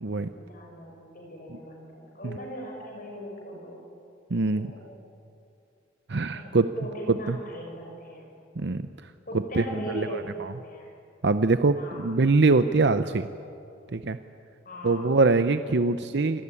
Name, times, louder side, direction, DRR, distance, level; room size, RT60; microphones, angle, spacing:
voice 1, 0.3-3.8 4.5-5.0 6.3-8.3 9.3-10.9 11.8-12.1 14.6-15.1, equal, 45° left, 1 dB, 6.2 m, -40 dB
voice 2, 4.3-4.7 6.1-6.7 7.3-7.4 8.6-8.9 9.6-9.7 9.9-10.5 11.2-13.3 13.9-14.2 14.8-16.4, right 3 dB, 60° right, 10 dB, 0.7 m, -23 dB
27.0 x 18.5 x 9.9 m, 2.5 s
head